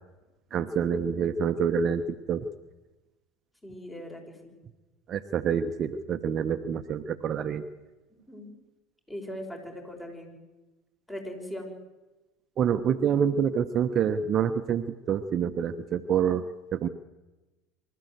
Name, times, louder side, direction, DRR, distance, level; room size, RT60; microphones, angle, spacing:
voice 1, 0.5-2.4 5.1-7.6 12.6-16.4 16.7-16.9, right 7 dB, 45° right, 9 dB, 1.0 m, -27 dB
voice 2, 3.6-4.5 8.1-8.6 9.1-10.3 11.1-11.7, equal, 15° left, 3 dB, 6.2 m, -40 dB
25.0 x 13.5 x 8.1 m, 1.1 s
hypercardioid pair, 85°, 0 cm